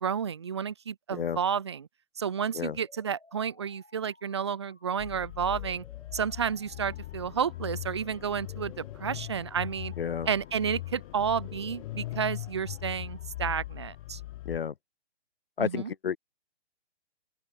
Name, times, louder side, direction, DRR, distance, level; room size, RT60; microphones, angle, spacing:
voice 1, 0.0-1.9 2.2-5.8 6.1-9.9 10.3-14.2 15.6-15.9, right 7 dB, 25° right, 0.4 m, -31 dB
sound 1, 2.5-14.5, left 2 dB, 80° left, 7.4 m, -59 dB
sound 2, 5.0-14.6, left 16 dB, 30° left, 1.5 m, -40 dB
voice 2, 10.0-10.3 14.4-14.7 15.6-16.2, left 8 dB, 55° left, 1.7 m, -31 dB
open air
figure-of-eight pair, 130°, 34 cm